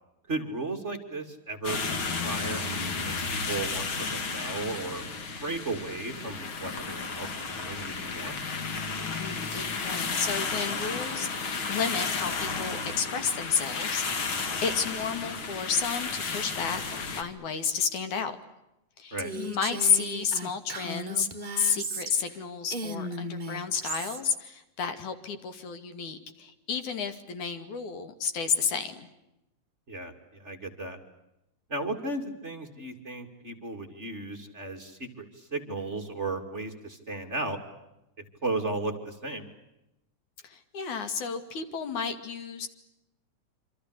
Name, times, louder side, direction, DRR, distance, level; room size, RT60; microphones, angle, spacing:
voice 1, 0.3-5.0 5.4-8.4 19.1-19.3 29.9-31.0 31.7-37.6 38.4-39.5, right 2 dB, 25° right, 5 dB, 2.7 m, -35 dB
sound 1, 1.6-17.2, left 4 dB, 45° left, 2.9 m, -33 dB
voice 2, 9.1-18.4 19.0-21.3 21.6-29.1 40.4-42.7, left 6 dB, 80° left, 9 dB, 3.7 m, -31 dB
Female speech woman speaking, 19.2-22.4 22.7-24.2, right 2 dB, 60° right, 0.4 m, -36 dB
27.0 x 26.5 x 8.2 m, 0.90 s
omnidirectional pair, 3.4 m